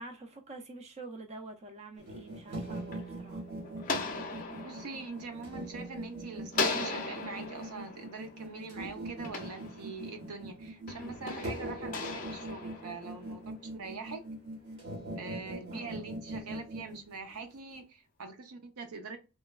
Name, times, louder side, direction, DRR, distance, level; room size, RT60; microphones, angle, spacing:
voice 1, 0.0-3.4 15.7-16.0, right 2 dB, 30° right, 0.4 m, -47 dB
sound 1, 2.0-17.8, right 1 dB, 50° right, 1.1 m, -42 dB
sound 2, 2.3-6.1 6.5-10.3 10.9-13.5, left 3 dB, 35° left, 0.5 m, -38 dB
voice 2, 4.6-13.4 13.7-14.2 15.2-19.2, right 4 dB, 85° right, 0.6 m, -43 dB
3.1 x 2.1 x 2.2 m
head